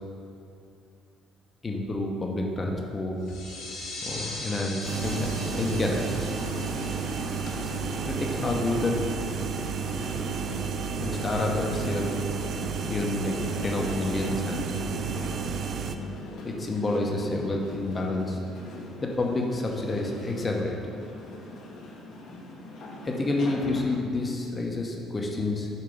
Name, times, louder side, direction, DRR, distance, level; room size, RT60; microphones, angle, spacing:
voice 1, 1.6-3.2 4.0-6.3 8.0-9.0 11.0-12.1 12.9-13.4 13.6-14.9 16.4-18.4 19.0-20.8 23.0-25.7, left 2 dB, 30° left, 0 dB, 0.9 m, -29 dB
sound 1, 3.2-8.6, left 2 dB, 85° left, 1.4 m, -41 dB
sound 2, 4.8-23.8, left 2 dB, 65° left, 1.0 m, -39 dB
sound 3, 4.8-16.0, right 7 dB, 55° right, 0.3 m, -32 dB
6.9 x 2.9 x 5.0 m, 2.6 s
supercardioid pair, 85°, 0 cm